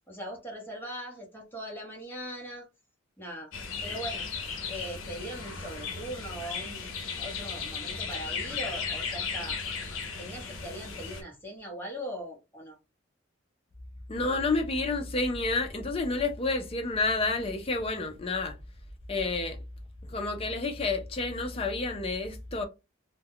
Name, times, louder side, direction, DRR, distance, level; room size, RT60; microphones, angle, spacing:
voice 1, 0.1-2.7 3.2-3.5 3.8-4.3 4.7-6.9 7.2-9.6 10.2-12.8, right 1 dB, 10° left, 1.0 m, -40 dB
sound 1, 3.5-11.2, left 5 dB, 80° left, 0.6 m, -36 dB
voice 2, 14.1-18.6 19.1-19.6 20.0-22.6, left 3 dB, 30° left, 0.5 m, -29 dB
2.3 x 2.2 x 3.6 m
head